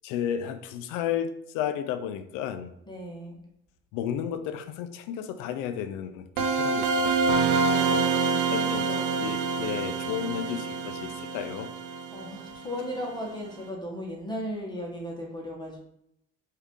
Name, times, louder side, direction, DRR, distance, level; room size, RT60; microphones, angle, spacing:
voice 1, 0.0-2.7 3.9-8.2 8.5-8.8 9.2-11.7, left 9 dB, 80° left, 10 dB, 0.5 m, -33 dB
voice 2, 2.9-3.4 7.6-9.2 12.1-15.8, equal, 15° left, -1 dB, 1.2 m, -36 dB
sound 1, 6.4-13.0, right 4 dB, 80° right, 0.7 m, -27 dB
4.7 x 2.8 x 3.6 m, 0.77 s
supercardioid pair, 90°, 32 cm